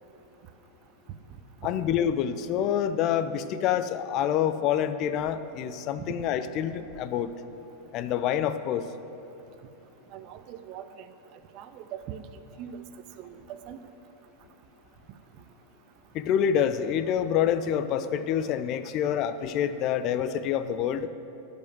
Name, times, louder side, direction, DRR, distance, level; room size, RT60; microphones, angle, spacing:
voice 1, 1.6-7.3 7.9-8.9 16.1-21.1, left 9 dB, 40° left, 12 dB, 0.5 m, -27 dB
voice 2, 10.1-10.9 11.5-12.2 12.6-12.8 13.2-13.8, right 10 dB, 45° right, 10 dB, 0.6 m, -41 dB
13.0 x 5.3 x 8.0 m, 2.9 s
figure-of-eight pair, 90°, 0 cm